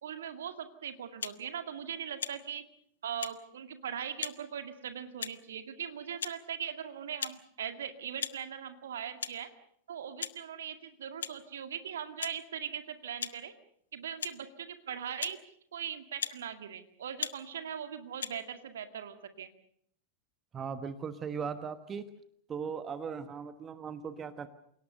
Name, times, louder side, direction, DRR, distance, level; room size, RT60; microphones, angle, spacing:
voice 1, 0.0-2.6 3.0-9.5 9.9-13.5 13.9-15.4 15.7-19.5, right 8 dB, 65° right, 8 dB, 2.1 m, -40 dB
sound 1, 1.2-1.4 2.2-2.4 3.2-3.3 4.2-4.4 5.2-5.5 6.2-6.4 7.2-7.4 8.2-8.4 9.2-9.3 10.2-10.4 11.2-11.4 12.2-12.3 13.2-13.3 14.2-14.3 15.2-15.4 16.2-16.4 17.2-17.4 18.2-18.3, left 7 dB, 70° left, 1.0 m, -37 dB
voice 2, 20.5-22.1 22.5-24.5, right 6 dB, 25° right, 12 dB, 1.3 m, -38 dB
28.0 x 18.0 x 6.7 m, 0.69 s
figure-of-eight pair, 90°, 0 cm